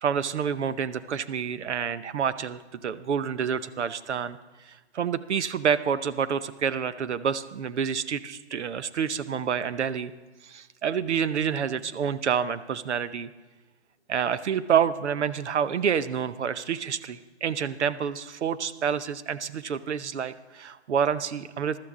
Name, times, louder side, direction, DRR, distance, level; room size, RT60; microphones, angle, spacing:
voice 1, 0.0-4.4 4.7-10.1 10.4-13.3 14.1-21.8, right 7 dB, 75° right, 13 dB, 0.8 m, -28 dB
15.0 x 12.5 x 3.7 m, 1.3 s
hypercardioid pair, 170°, 34 cm